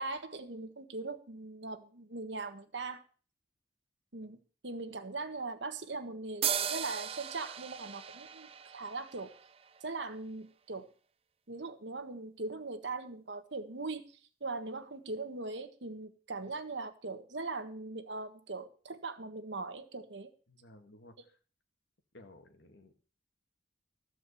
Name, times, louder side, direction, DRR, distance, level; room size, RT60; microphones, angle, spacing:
voice 1, 0.0-3.0 4.1-4.4 4.6-9.3 9.8-10.9 11.5-20.3, right 3 dB, 80° right, 8 dB, 1.4 m, -40 dB
sound 1, 6.4-10.0, right 9 dB, 35° right, 0.6 m, -37 dB
voice 2, 20.5-21.4 22.1-23.0, left 1 dB, 75° left, 6 dB, 1.8 m, -56 dB
14.0 x 4.9 x 8.4 m, 0.39 s
head